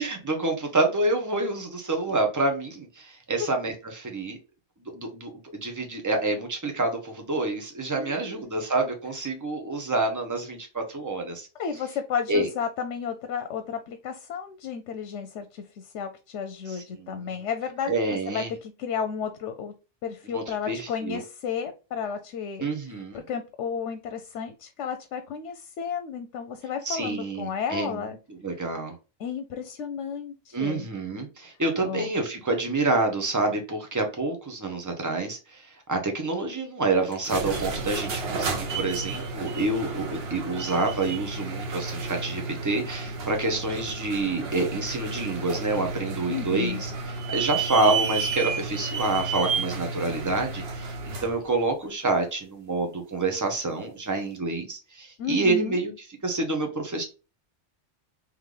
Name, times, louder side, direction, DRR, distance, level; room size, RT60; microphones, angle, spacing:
voice 1, 0.0-4.4 4.9-5.3 5.6-11.5 12.3-12.5 16.7-17.4 17.9-18.5 20.3-21.2 22.6-23.2 26.8-28.1 28.4-28.9 30.5-55.9 56.2-57.0, right 2 dB, 20° right, 0.8 m, -28 dB
voice 2, 7.9-8.5 11.6-19.7 20.0-28.2 29.2-30.9 31.8-32.1 46.3-46.8 55.2-55.8, left 7 dB, 85° left, 0.9 m, -33 dB
sound 1, 37.1-51.4, right 4 dB, 60° right, 1.1 m, -32 dB
3.3 x 3.2 x 3.7 m
omnidirectional pair, 1.2 m